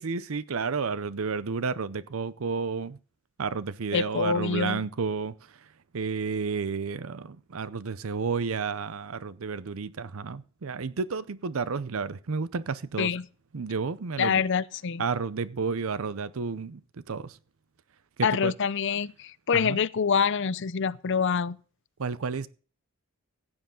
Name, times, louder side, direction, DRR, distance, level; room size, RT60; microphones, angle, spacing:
voice 1, 0.0-3.0 3.4-5.6 5.9-13.1 13.5-14.4 15.0-16.8 17.1-17.4 18.2-18.5 19.5-19.8 22.0-22.5, right 5 dB, 70° right, 0.6 m, -31 dB
voice 2, 3.9-4.8 13.0-13.3 14.2-15.0 18.2-21.6, left 6 dB, 55° left, 0.5 m, -26 dB
15.5 x 9.8 x 3.7 m
head